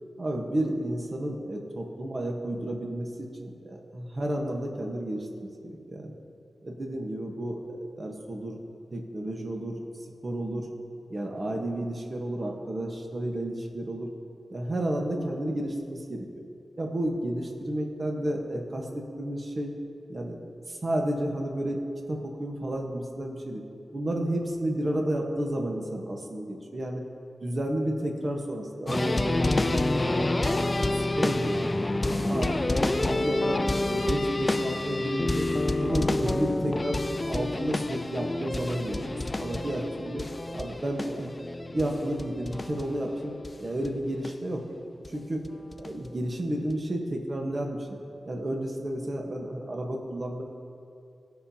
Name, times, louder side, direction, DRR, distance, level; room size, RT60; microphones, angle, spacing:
voice 1, 0.2-5.3 5.6-6.2 6.6-8.6 8.9-9.8 10.2-10.7 11.1-14.1 14.5-16.3 16.8-19.7 20.1-20.4 20.7-21.8 22.1-23.6 23.9-27.0 27.4-30.3 30.7-31.7 32.0-32.6 33.0-35.5 35.8-39.1 39.4-40.2 40.5-41.3 41.7-44.6 45.1-45.4 45.7-47.9 48.2-50.4, right 1 dB, 40° right, 1 dB, 1.2 m, -31 dB
sound 1, 28.9-43.5 43.8-43.9 44.2-44.3 45.0-45.1 45.4-46.1 46.7-46.8, left 2 dB, 30° left, 0.4 m, -28 dB
17.5 x 5.8 x 2.8 m, 2.5 s
wide cardioid pair, 75°, 0 cm